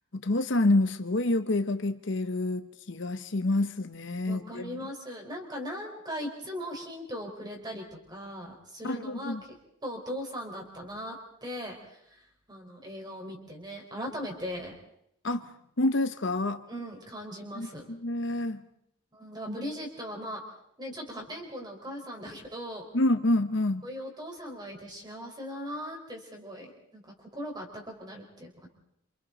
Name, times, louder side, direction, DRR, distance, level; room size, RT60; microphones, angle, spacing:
voice 1, 0.1-4.7 8.8-9.4 15.2-15.5 15.8-16.6 17.5-18.6 22.9-23.8, left 2 dB, 55° left, 9 dB, 0.9 m, -27 dB
voice 2, 4.2-9.4 9.8-14.7 16.7-17.9 19.1-20.4 20.8-22.9 23.8-28.7, equal, 20° right, 1 dB, 4.7 m, -39 dB
28.0 x 27.5 x 4.0 m, 0.75 s
head